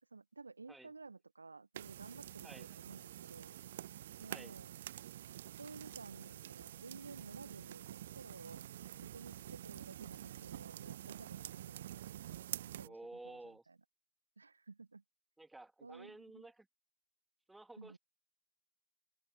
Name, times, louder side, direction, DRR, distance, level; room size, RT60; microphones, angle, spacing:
voice 1, 0.0-3.5 4.2-4.7 5.5-12.0 12.6-13.0 13.2-13.8 14.4-15.0 15.8-16.5 17.8-18.0, right 4 dB, 80° right, 1.7 m, -54 dB
sound 1, 1.7-12.9, right 12 dB, 60° right, 0.7 m, -48 dB
voice 2, 2.4-2.8 4.3-4.5 12.8-13.6 15.4-16.7 17.5-18.0, right 2 dB, 5° right, 2.8 m, -53 dB
open air
figure-of-eight pair, 90°, 0 cm